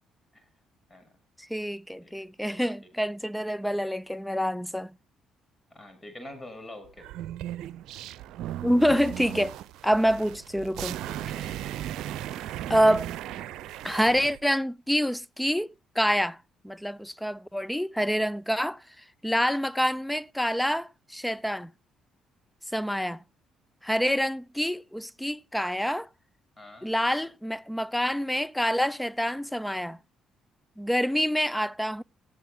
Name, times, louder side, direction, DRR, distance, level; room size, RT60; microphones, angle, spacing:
voice 1, 1.5-4.9 8.6-9.6 9.8-11.0 12.7-13.1 13.8-16.4 16.6-18.8 19.2-21.7 22.7-23.2 23.8-26.1 26.8-30.0 30.8-32.0, equal, 5° left, 0.7 m, -27 dB
voice 2, 5.7-7.0 11.1-11.5 26.6-26.9, left 1 dB, 25° left, 7.5 m, -45 dB
sound 1, 7.0-14.4, right 12 dB, 70° right, 0.8 m, -37 dB
18.0 x 14.5 x 2.4 m
hypercardioid pair, 50°, 0 cm